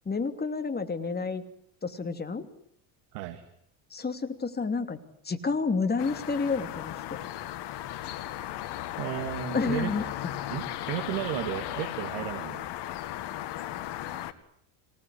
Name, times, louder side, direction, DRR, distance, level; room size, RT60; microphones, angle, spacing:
voice 1, 0.0-1.4 1.8-2.5 3.9-5.0 5.2-7.2 9.5-10.1, left 4 dB, 20° left, 7 dB, 3.0 m, -30 dB
voice 2, 3.1-3.4 9.0-9.9 10.5-12.7, right 13 dB, 80° right, 6 dB, 2.7 m, -34 dB
sound 1, 6.0-14.3, left 13 dB, 60° left, 2.2 m, -36 dB
26.0 x 19.0 x 9.8 m, 0.71 s
supercardioid pair, 100°, 47 cm